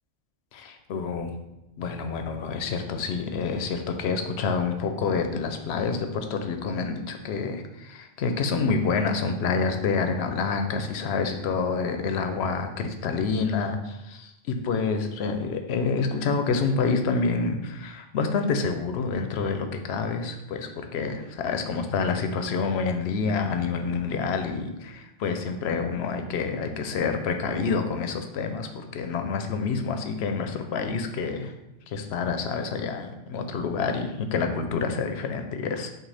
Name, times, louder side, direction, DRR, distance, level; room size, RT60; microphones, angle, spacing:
voice 1, 0.5-1.3 1.8-31.6 31.9-35.9, left 5 dB, 85° left, 6 dB, 0.8 m, -28 dB
6.1 x 2.4 x 3.3 m, 0.93 s
omnidirectional pair, 1.0 m